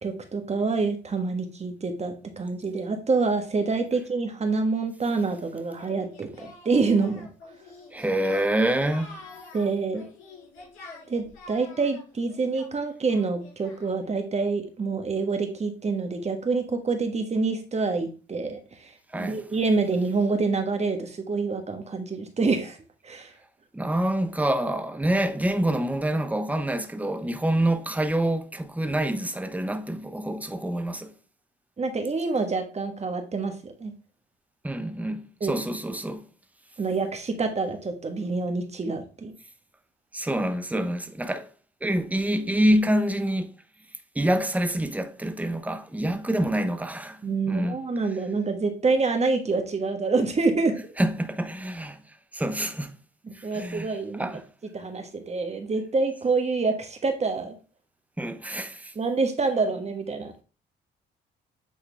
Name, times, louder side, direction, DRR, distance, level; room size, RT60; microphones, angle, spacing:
voice 1, 0.0-7.3 9.5-10.0 11.1-22.8 23.0-23.3 31.8-33.9 35.4-35.6 36.8-39.3 47.2-50.9 53.2-54.3 54.7-57.6 58.9-60.4, right 4 dB, 35° right, 1.4 m, -27 dB
Singing, 5.8-14.1, left 2 dB, 85° left, 3.2 m, -47 dB
voice 2, 7.9-9.2 19.1-19.4 23.7-31.1 34.6-36.2 40.1-41.5 41.8-43.5 44.1-47.8 51.0-52.0 52.3-52.9 53.3-54.4 58.2-58.9, right 1 dB, 5° right, 0.8 m, -26 dB
8.7 x 3.6 x 3.4 m
cardioid pair, 90°, 20 cm